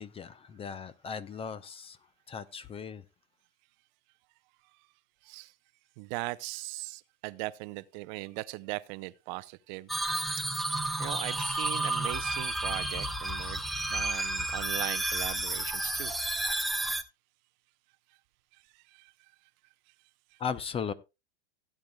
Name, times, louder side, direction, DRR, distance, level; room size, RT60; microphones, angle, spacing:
voice 1, 0.0-2.0 2.3-3.0 20.4-20.9, left 6 dB, 15° left, 0.6 m, -37 dB
voice 2, 6.0-9.9 11.0-16.1 18.7-19.1, right 21 dB, 40° right, 0.6 m, -39 dB
sound 1, 9.9-17.0, right 1 dB, ahead, 0.9 m, -31 dB
17.5 x 8.9 x 2.2 m
figure-of-eight pair, 95°, 36 cm